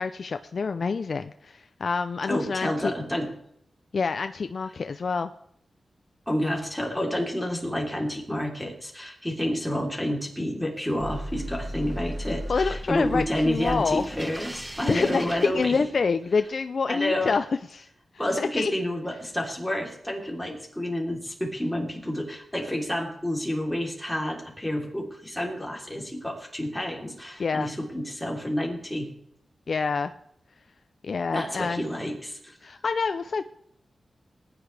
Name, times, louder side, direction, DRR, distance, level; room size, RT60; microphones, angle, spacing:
voice 1, 0.0-2.9 3.9-5.3 12.5-14.0 14.9-17.5 17.7-17.9 18.4-18.7 27.4-27.7 29.7-30.1 31.0-31.8 32.6-33.4, left 5 dB, 65° left, 9 dB, 0.4 m, -27 dB
voice 2, 2.3-3.3 6.3-15.9 16.9-17.4 18.2-29.1 31.3-32.6, left 1 dB, 5° left, -1 dB, 3.4 m, -29 dB
sound 1, 11.0-16.3, equal, 10° right, 1.0 m, -36 dB
19.0 x 9.8 x 3.4 m, 0.70 s
wide cardioid pair, 75°, 0 cm